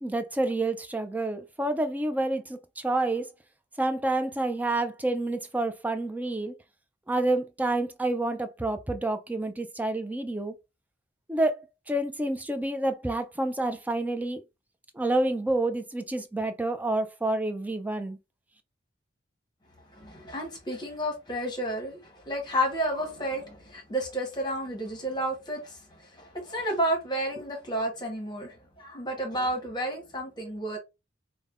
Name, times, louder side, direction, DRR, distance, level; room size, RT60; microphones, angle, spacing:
voice 1, 0.0-3.3 3.8-6.5 7.1-10.5 11.3-14.4 14.9-18.2, right 2 dB, 10° right, 0.3 m, -28 dB
voice 2, 19.9-30.8, equal, 25° left, 1.1 m, -31 dB
5.2 x 2.1 x 2.4 m
head